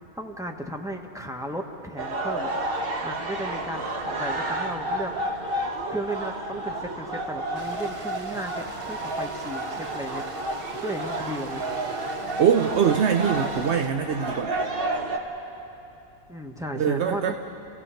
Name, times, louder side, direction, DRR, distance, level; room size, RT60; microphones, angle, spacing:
voice 1, 0.0-2.5 3.0-5.1 5.9-10.2 10.8-11.7 16.3-17.3, right 1 dB, 5° right, 2 dB, 1.1 m, -35 dB
sound 1, 2.0-15.2, right 2 dB, 45° right, 1.4 m, -31 dB
Stream, 7.5-13.9, right 3 dB, 30° right, 0.7 m, -43 dB
voice 2, 12.4-14.6 16.7-17.3, right 7 dB, 60° right, 7 dB, 0.9 m, -23 dB
29.0 x 16.5 x 5.7 m, 2.9 s
omnidirectional pair, 1.4 m